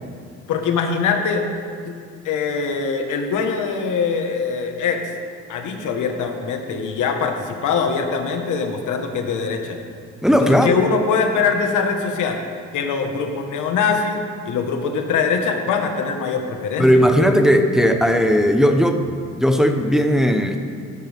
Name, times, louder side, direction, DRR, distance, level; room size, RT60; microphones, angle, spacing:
voice 1, 0.5-1.5 1.8-2.0 2.2-5.1 5.5-9.8 10.4-12.4 12.7-16.9, left 5 dB, 80° left, 4 dB, 1.6 m, -22 dB
voice 2, 10.2-10.8 16.8-20.6, equal, ahead, 5 dB, 1.0 m, -17 dB
16.5 x 12.0 x 3.6 m, 2.1 s
cardioid pair, 90°, 30 cm